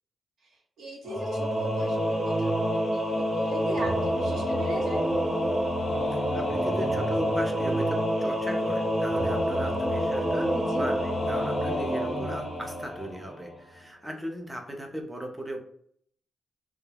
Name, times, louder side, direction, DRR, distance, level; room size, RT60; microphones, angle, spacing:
voice 1, 0.8-5.0 10.4-10.9, right 1 dB, 85° right, -2 dB, 0.9 m, -39 dB
Singing / Musical instrument, 1.1-13.5, equal, 15° left, 0.8 m, -27 dB
voice 2, 6.1-15.6, equal, 10° right, 2 dB, 0.4 m, -37 dB
2.2 x 2.1 x 3.2 m, 0.63 s
wide cardioid pair, 160°, 0 cm